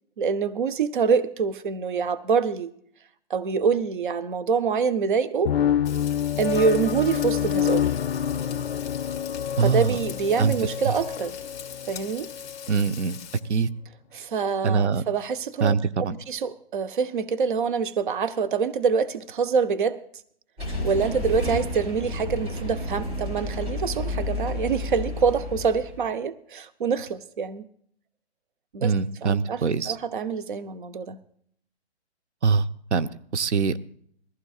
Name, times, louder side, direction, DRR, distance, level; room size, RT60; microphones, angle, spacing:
voice 1, 0.2-2.7 3.3-5.6 6.4-7.9 9.6-11.4 11.9-12.3 14.1-15.7 16.3-20.0 20.8-27.6 28.7-28.9 29.2-31.2, right 5 dB, 45° right, 12 dB, 0.7 m, -25 dB
sound 1, 5.4-12.8, left 9 dB, 60° left, 0.6 m, -27 dB
Frying (food), 5.8-13.4, left 8 dB, 25° left, 1.7 m, -42 dB
voice 2, 9.6-10.0 10.4-10.5 12.7-13.2 13.5-13.7 14.6-15.0 15.6-16.1 28.8-30.0 32.4-32.6 32.9-33.8, right 5 dB, 80° right, 14 dB, 0.9 m, -23 dB
sound 2, 20.6-26.1, left 2 dB, 25° right, 5.0 m, -31 dB
21.5 x 14.5 x 2.4 m, 0.64 s
hypercardioid pair, 170°, 34 cm